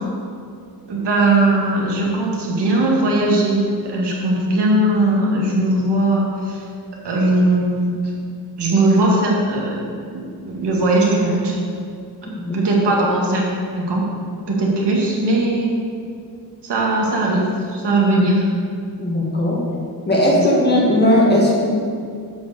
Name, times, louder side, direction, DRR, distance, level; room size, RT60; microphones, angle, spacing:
voice 1, 0.9-3.6 3.9-6.6 7.0-8.0 8.6-9.8 10.1-11.6 12.5-13.4 13.7-14.1 14.5-15.8 16.6-18.5 20.3-20.4, right 2 dB, 85° right, -3 dB, 2.0 m, -19 dB
voice 2, 12.3-12.6 19.0-19.6 20.1-21.7, left 1 dB, 25° left, -4 dB, 1.7 m, -17 dB
8.2 x 6.1 x 6.7 m, 2.3 s
wide cardioid pair, 170°, 40 cm